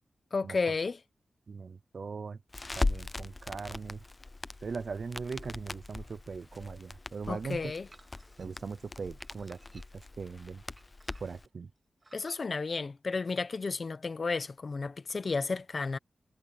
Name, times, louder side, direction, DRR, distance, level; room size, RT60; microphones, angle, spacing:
voice 1, 0.3-1.0 7.3-7.9 12.1-16.0, left 4 dB, 40° left, 0.9 m, -32 dB
voice 2, 1.5-2.4 2.8-4.0 4.6-7.7 8.4-9.6 10.2-10.6 11.2-11.7, right 5 dB, 50° right, 0.6 m, -39 dB
Crackle, 2.5-11.5, left 2 dB, 20° left, 0.5 m, -39 dB
sound 1, 7.9-8.5 9.2-10.1 10.8-11.5 12.0-12.4, right 3 dB, 25° right, 3.9 m, -59 dB
wide cardioid pair, 180°, 0 cm